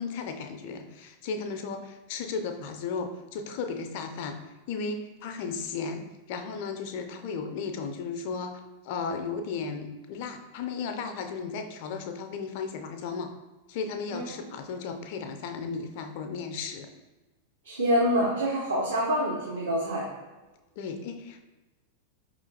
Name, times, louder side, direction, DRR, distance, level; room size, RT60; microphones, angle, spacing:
voice 1, 0.0-4.4 4.7-13.3 13.7-16.9 20.8-21.4, left 5 dB, 50° left, 6 dB, 0.4 m, -35 dB
voice 2, 17.6-20.0, equal, 65° right, -4 dB, 0.7 m, -26 dB
4.9 x 3.0 x 2.7 m, 1.2 s
figure-of-eight pair, 90°, 0 cm